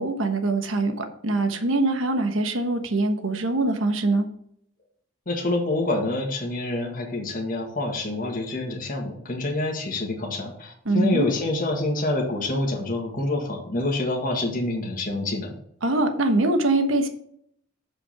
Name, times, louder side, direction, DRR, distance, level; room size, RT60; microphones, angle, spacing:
voice 1, 0.0-4.3 10.8-11.3 15.8-17.1, right 2 dB, 80° right, 6 dB, 1.2 m, -23 dB
voice 2, 5.3-15.5, left 2 dB, 45° left, 0 dB, 1.7 m, -27 dB
7.6 x 5.2 x 5.8 m, 0.69 s
head